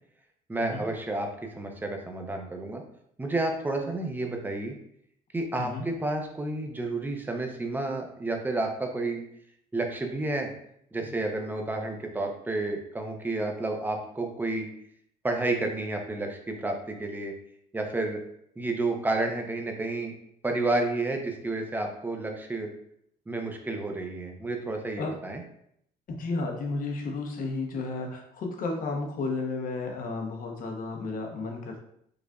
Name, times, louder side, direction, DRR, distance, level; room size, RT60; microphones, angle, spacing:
voice 1, 0.5-1.3 1.6-2.8 3.2-4.7 5.3-9.2 9.7-10.5 10.9-14.7 15.2-17.3 17.7-18.2 18.6-20.1 20.4-22.7 23.3-25.4, right 2 dB, 10° right, 3 dB, 0.6 m, -30 dB
voice 2, 26.1-31.8, left 3 dB, 55° left, 2 dB, 0.8 m, -33 dB
4.9 x 2.4 x 2.3 m, 0.70 s
cardioid pair, 110°, 17 cm